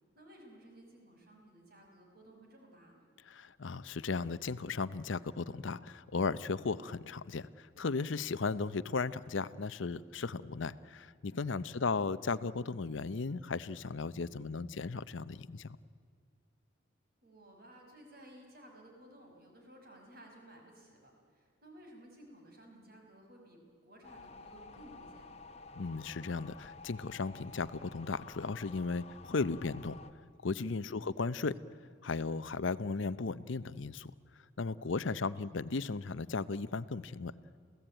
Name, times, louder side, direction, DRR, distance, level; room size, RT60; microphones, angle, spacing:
voice 1, 0.1-3.1 11.7-12.0 14.3-14.7 17.2-25.4 30.9-31.2 35.2-35.7, right 1 dB, 50° right, 1 dB, 5.6 m, -57 dB
voice 2, 3.3-15.8 25.8-30.0 30.4-31.5 32.0-34.1 34.6-37.3, left 4 dB, 75° left, 16 dB, 0.7 m, -36 dB
sound 1, 24.0-30.1, left 3 dB, 30° left, 1.1 m, -52 dB
28.0 x 16.5 x 9.0 m, 2.2 s
head